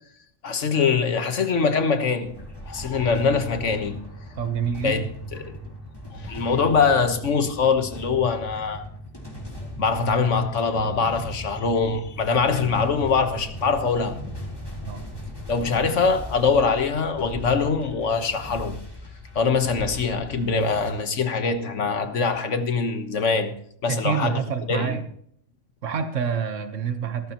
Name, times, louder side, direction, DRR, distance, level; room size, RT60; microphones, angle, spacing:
voice 1, 0.4-2.3 2.7-4.0 4.8-5.1 5.4-5.6 6.1-8.8 9.8-14.1 15.5-18.8 19.3-23.5 23.8-24.4 24.7-25.0, left 5 dB, 75° left, 1.6 m, -23 dB
sound 1, 2.2-20.9, left 1 dB, 20° left, 3.5 m, -38 dB
voice 2, 4.4-5.0 14.8-15.0 23.9-25.0 25.8-27.3, right 7 dB, 85° right, 1.5 m, -27 dB
17.0 x 14.5 x 3.0 m
omnidirectional pair, 1.3 m